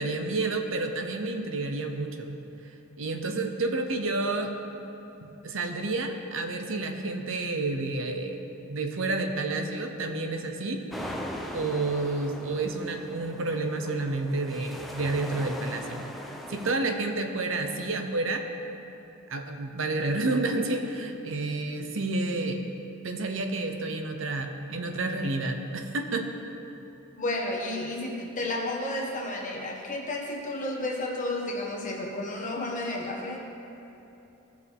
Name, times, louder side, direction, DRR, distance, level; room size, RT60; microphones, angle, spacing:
voice 1, 0.0-2.4 3.0-4.5 5.2-10.8 11.5-16.1 16.5-18.4 19.3-22.6 23.0-26.3, right 2 dB, 65° right, 5 dB, 0.8 m, -30 dB
sound 1, 10.9-16.8, equal, ahead, 0.6 m, -39 dB
voice 2, 27.1-33.4, left 1 dB, 35° left, -1 dB, 1.3 m, -32 dB
16.5 x 6.4 x 3.5 m, 2.9 s
head